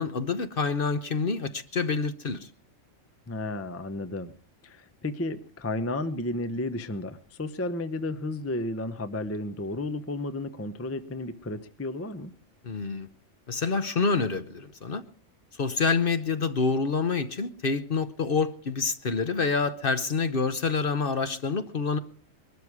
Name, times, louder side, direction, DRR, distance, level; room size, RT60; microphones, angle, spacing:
voice 1, 0.0-2.4 12.6-13.1 13.5-15.0 15.6-22.0, left 4 dB, 45° left, 0.9 m, -27 dB
voice 2, 3.3-4.3 4.6-12.3, left 2 dB, 15° left, 0.6 m, -33 dB
21.5 x 12.5 x 4.7 m
omnidirectional pair, 1.4 m